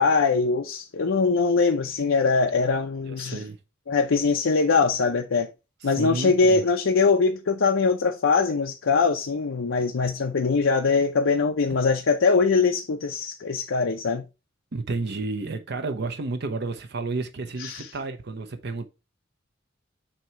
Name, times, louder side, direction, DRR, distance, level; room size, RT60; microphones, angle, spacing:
voice 1, 0.0-3.4 3.9-5.5 5.8-14.2 17.6-17.9, left 4 dB, 85° left, 0.6 m, -22 dB
voice 2, 3.1-3.6 5.8-6.7 14.7-18.8, right 3 dB, 60° right, 0.7 m, -31 dB
7.5 x 2.8 x 4.5 m
head